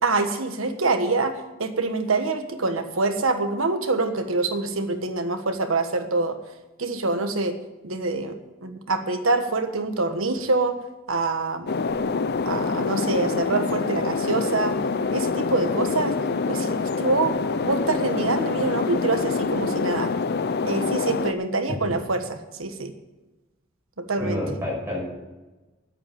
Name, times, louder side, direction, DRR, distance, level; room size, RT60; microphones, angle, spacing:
voice 1, 0.0-6.4 6.8-7.5 7.8-8.4 8.6-10.8 11.1-11.7 12.4-14.8 15.1-16.2 16.5-17.3 17.6-20.1 20.6-22.9 24.0-24.4, right 3 dB, 85° right, 7 dB, 1.4 m, -25 dB
sound 1, 11.7-21.3, left 4 dB, 50° left, 0.6 m, -26 dB
voice 2, 24.2-25.0, left 1 dB, 10° right, -4 dB, 5.8 m, -29 dB
10.5 x 8.5 x 8.6 m, 1.1 s
head